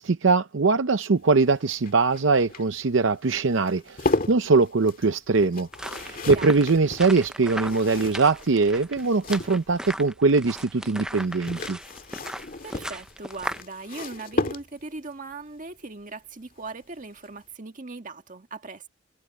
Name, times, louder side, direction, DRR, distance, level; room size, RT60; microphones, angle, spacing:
voice 1, 0.0-11.8, right 4 dB, 70° right, 0.6 m, -22 dB
sound 1, 1.2-10.0 11.1-15.1 16.7-17.0 17.3-17.4, left 2 dB, 45° left, 2.1 m, -34 dB
sound 2, 5.7-13.6, right 1 dB, 5° right, 0.5 m, -37 dB
voice 2, 6.3-6.7 12.6-18.9, right 3 dB, 40° right, 1.7 m, -39 dB
head